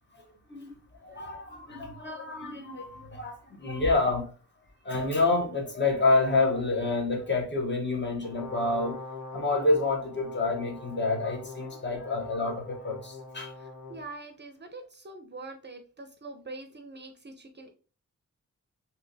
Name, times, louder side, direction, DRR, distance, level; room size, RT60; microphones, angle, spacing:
voice 1, 0.5-4.3 4.8-9.0 9.3-13.5, left 3 dB, 35° left, 0.9 m, -28 dB
Brass instrument, 8.2-14.0, left 3 dB, 85° left, 0.9 m, -42 dB
voice 2, 13.6-17.7, right 3 dB, 35° right, 0.5 m, -44 dB
3.3 x 2.8 x 2.6 m
wide cardioid pair, 90°, 31 cm